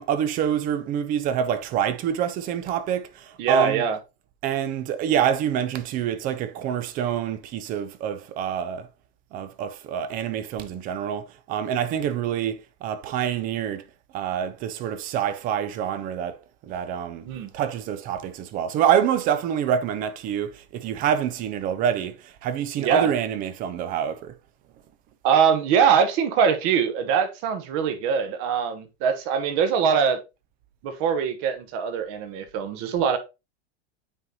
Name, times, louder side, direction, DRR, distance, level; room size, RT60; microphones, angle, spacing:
voice 1, 0.0-3.8 4.4-8.9 9.3-13.8 14.1-17.2 17.5-24.3, right 9 dB, 30° right, 0.5 m, -26 dB
voice 2, 3.4-4.0 17.2-17.5 22.8-23.1 25.2-30.2 30.8-33.2, right 7 dB, 45° right, 1.1 m, -22 dB
9.0 x 3.9 x 2.8 m
supercardioid pair, 155°, 31 cm